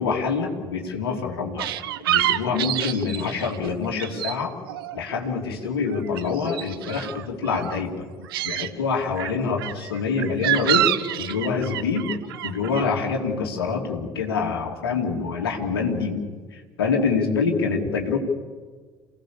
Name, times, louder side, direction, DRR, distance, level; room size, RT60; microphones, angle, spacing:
voice 1, 0.0-1.7 2.1-4.5 4.9-8.0 8.5-10.9 11.2-12.2 12.4-16.2 16.8-18.2, left 5 dB, 75° left, 2 dB, 3.1 m, -25 dB
sound 1, 1.6-4.4 4.6-5.5 5.8-7.8 8.2-8.7 9.2-12.8, right 13 dB, 75° right, 0.9 m, -27 dB
28.5 x 17.5 x 7.1 m, 1.5 s
figure-of-eight pair, 60°, 13 cm